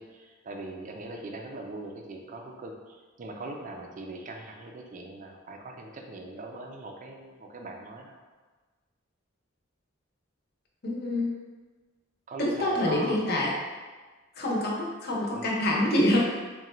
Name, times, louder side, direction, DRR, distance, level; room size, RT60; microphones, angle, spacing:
voice 1, 0.0-8.2 12.3-13.2 15.3-15.5, right 2 dB, 40° right, 2 dB, 0.4 m, -41 dB
voice 2, 10.8-11.3 12.4-13.5 14.4-16.2, left 1 dB, 50° left, -3 dB, 0.8 m, -26 dB
3.8 x 2.2 x 4.2 m, 1.3 s
head